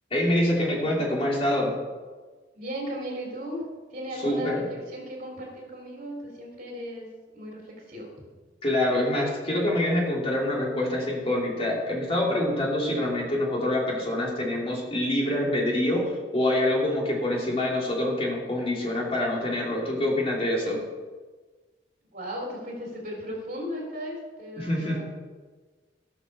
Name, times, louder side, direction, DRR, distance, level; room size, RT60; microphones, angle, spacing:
voice 1, 0.1-1.7 4.2-4.6 8.6-16.0 16.3-20.8 24.6-25.0, left 1 dB, 35° left, -3 dB, 2.8 m, -25 dB
voice 2, 2.5-3.6 3.9-7.1 7.3-8.3 22.0-25.0, equal, 45° right, -1 dB, 3.4 m, -36 dB
16.5 x 6.2 x 6.7 m, 1.3 s
head